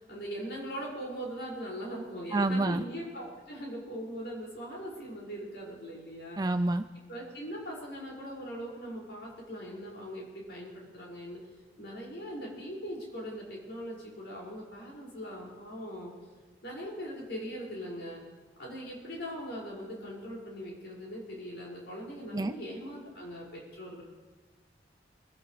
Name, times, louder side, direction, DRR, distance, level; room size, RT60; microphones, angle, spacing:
voice 1, 0.0-6.4 7.1-11.4 11.8-16.1 16.6-18.2 18.6-24.0, equal, 75° left, -3 dB, 5.9 m, -40 dB
voice 2, 2.3-2.8 6.4-6.8 22.3-22.5, right 2 dB, 20° right, 9 dB, 0.4 m, -27 dB
26.0 x 16.5 x 3.3 m, 1.4 s
head